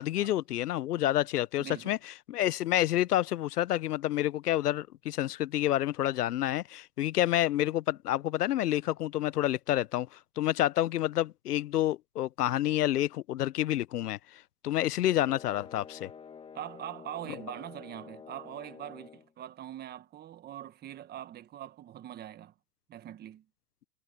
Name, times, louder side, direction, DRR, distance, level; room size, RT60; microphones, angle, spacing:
voice 1, 0.0-2.0 2.3-10.1 10.4-16.1, left 13 dB, 65° left, 1.1 m, -29 dB
voice 2, 1.6-2.0 16.5-22.5 22.9-23.4, right 12 dB, 20° right, 1.5 m, -43 dB
sound 1, 15.0-19.3, left 6 dB, 10° left, 1.7 m, -49 dB
hypercardioid pair, 135°, 49 cm